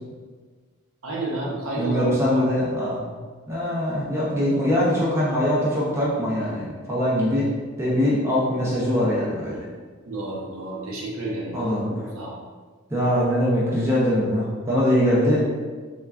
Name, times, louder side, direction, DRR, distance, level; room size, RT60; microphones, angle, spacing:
voice 1, 1.0-2.4 10.0-11.7 12.1-12.3, right 1 dB, 70° right, -4 dB, 0.7 m, -30 dB
voice 2, 1.8-3.0 3.5-7.5 7.8-9.6 11.5-11.9 12.9-15.4, equal, 10° right, -7 dB, 0.5 m, -22 dB
3.2 x 2.3 x 2.3 m, 1.5 s
head